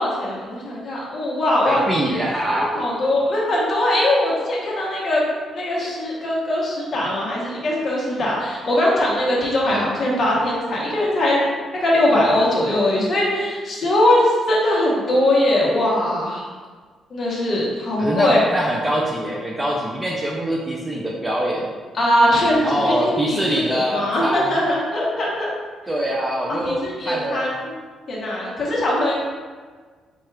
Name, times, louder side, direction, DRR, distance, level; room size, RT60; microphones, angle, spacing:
voice 1, 0.0-1.8 2.5-5.2 5.5-11.5 11.8-16.4 17.1-18.5 21.9-25.5 26.5-27.7 28.1-29.2, left 1 dB, 35° left, -5 dB, 1.0 m, -21 dB
voice 2, 1.6-2.8 9.7-9.8 18.0-21.7 22.6-24.6 25.9-27.5, right 1 dB, 10° right, -3 dB, 0.4 m, -24 dB
4.3 x 2.3 x 4.7 m, 1.5 s
cardioid pair, 175°, 0 cm